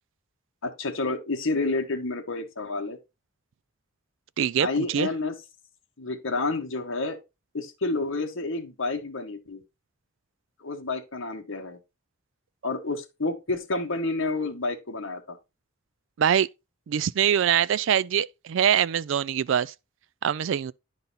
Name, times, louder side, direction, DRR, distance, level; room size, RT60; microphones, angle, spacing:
voice 1, 0.6-3.0 4.6-5.3 6.0-7.2 7.5-9.6 10.6-11.8 12.6-15.4, left 3 dB, 70° left, 1.2 m, -29 dB
voice 2, 4.4-5.1 16.2-16.5 16.9-19.7 20.2-20.7, right 9 dB, 65° right, 0.3 m, -23 dB
10.0 x 4.0 x 4.0 m
head